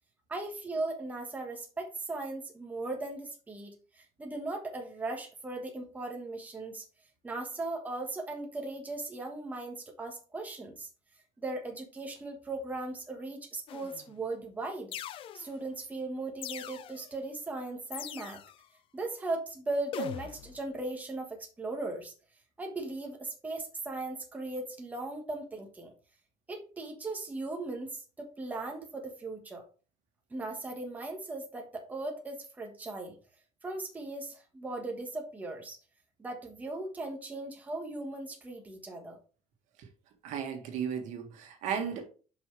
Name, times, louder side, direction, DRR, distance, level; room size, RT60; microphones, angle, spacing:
voice 1, 0.3-6.8 7.2-10.9 11.4-14.9 15.3-18.4 18.9-22.1 22.6-25.9 26.5-29.6 30.3-33.1 33.6-35.8 36.2-39.2, right 2 dB, 10° right, 1.3 m, -38 dB
sound 1, 13.7-14.1 14.9-15.7 16.4-17.1 17.9-18.7 19.9-20.6, left 11 dB, 45° left, 0.5 m, -42 dB
voice 2, 40.2-42.1, right 7 dB, 70° right, 1.8 m, -35 dB
8.2 x 5.6 x 3.2 m
cardioid pair, 170°, 13 cm